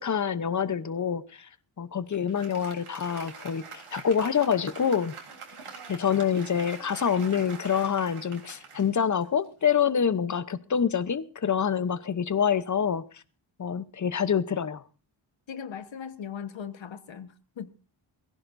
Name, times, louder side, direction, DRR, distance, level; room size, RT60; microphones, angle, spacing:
voice 1, 0.0-1.5 1.8-5.1 5.9-13.2 13.6-14.8, left 7 dB, 35° left, 0.8 m, -26 dB
Applause, 2.1-9.7, right 5 dB, 90° right, 3.8 m, -45 dB
voice 2, 15.5-17.7, left 7 dB, 65° left, 1.3 m, -39 dB
22.0 x 16.0 x 2.6 m
wide cardioid pair, 150°, 49 cm